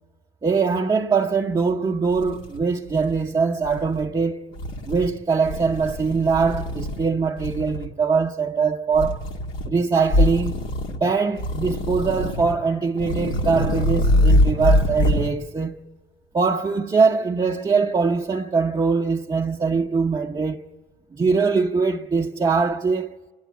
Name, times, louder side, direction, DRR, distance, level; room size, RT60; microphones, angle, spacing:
voice 1, 0.4-4.5 4.9-9.3 9.6-10.5 10.9-15.8 16.3-20.6 21.1-23.2, right 5 dB, 25° right, 0.8 m, -22 dB
sound 1, 1.7-1.8 2.1-3.3 3.6-4.1 4.5-5.1 5.4-7.1 7.4-7.9 8.9-9.7 10.1-11.0 11.4-12.6 13.0-15.3, left 1 dB, 85° left, 1.9 m, -23 dB
27.0 x 11.5 x 8.4 m
cardioid pair, 90°, 20 cm